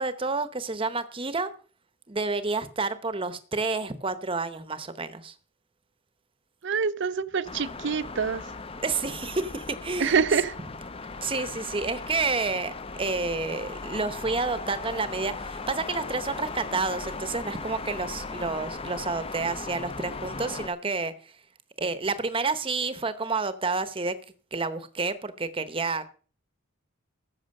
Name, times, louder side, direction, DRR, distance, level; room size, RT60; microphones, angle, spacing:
voice 1, 0.0-1.5 2.1-5.3 8.8-10.2 11.2-21.3 21.8-24.1 24.5-26.1, right 3 dB, 25° right, 0.8 m, -29 dB
voice 2, 6.6-8.4 10.0-10.5, right 5 dB, 55° right, 0.5 m, -25 dB
sound 1, 7.4-20.7, left 3 dB, 25° left, 0.5 m, -38 dB
14.0 x 6.2 x 6.5 m
head